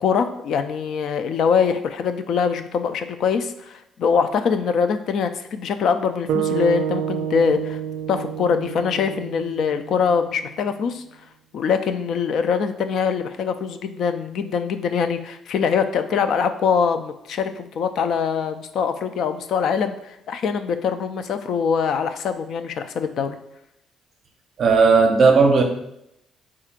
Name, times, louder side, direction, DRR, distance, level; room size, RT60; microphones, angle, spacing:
voice 1, 0.0-7.8 8.1-11.0 11.5-23.4, left 6 dB, 55° left, 9 dB, 0.3 m, -23 dB
sound 1, 6.3-10.5, right 9 dB, 80° right, 0.3 m, -28 dB
voice 2, 24.6-25.6, right 4 dB, 40° right, 3 dB, 0.6 m, -15 dB
5.7 x 3.7 x 2.4 m, 0.81 s
cardioid pair, 165°, 0 cm